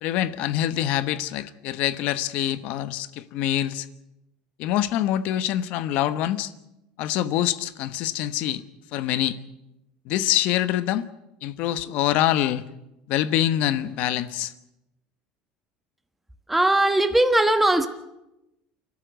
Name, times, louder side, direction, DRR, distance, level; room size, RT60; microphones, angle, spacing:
voice 1, 0.0-3.9 4.6-6.5 7.0-8.6 8.9-9.4 10.1-11.1 11.4-12.6 13.1-14.5, left 12 dB, 60° left, 1.1 m, -25 dB
voice 2, 16.5-17.9, right 1 dB, 5° right, 1.3 m, -19 dB
28.5 x 12.5 x 8.2 m
cardioid pair, 135°, 3 cm